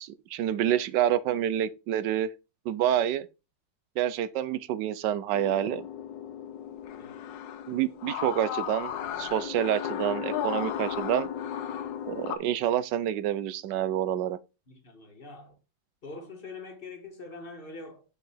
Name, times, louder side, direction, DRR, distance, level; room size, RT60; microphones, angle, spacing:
voice 1, 0.0-2.3 2.7-3.3 4.0-5.8 7.7-8.9 9.2-11.3 12.1-14.4, right 11 dB, 75° right, 1.2 m, -28 dB
sound 1, 5.3-12.4, left 9 dB, 80° left, 1.4 m, -35 dB
voice 2, 14.7-15.6 16.0-18.0, left 3 dB, 30° left, 1.4 m, -44 dB
6.5 x 4.7 x 4.3 m
omnidirectional pair, 2.0 m